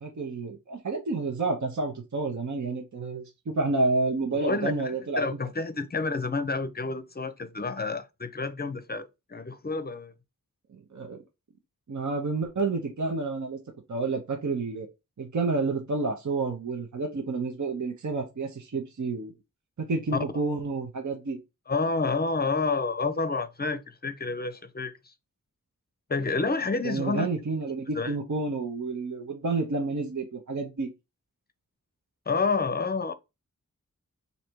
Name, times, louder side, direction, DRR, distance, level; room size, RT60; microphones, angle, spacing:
voice 1, 0.0-5.4 10.7-11.2 11.9-13.6 13.9-14.9 15.2-19.3 19.8-21.4 26.8-30.9, right 3 dB, 60° right, 0.8 m, -29 dB
voice 2, 4.3-10.1 21.7-25.1 26.1-27.3 27.9-28.1 32.3-33.1, left 4 dB, 30° left, 0.6 m, -29 dB
3.2 x 2.7 x 4.4 m
wide cardioid pair, 45°, 33 cm